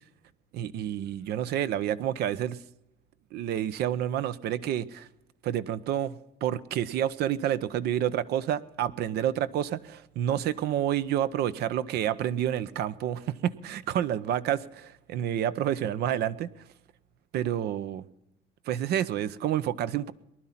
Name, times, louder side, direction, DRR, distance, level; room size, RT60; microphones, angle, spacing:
voice 1, 0.5-2.6 3.3-5.1 5.4-6.2 6.4-16.5 17.3-18.0 18.7-20.1, right 11 dB, 75° right, 15 dB, 0.7 m, -29 dB
20.0 x 11.0 x 5.8 m, 0.89 s
cardioid pair, 110°, 17 cm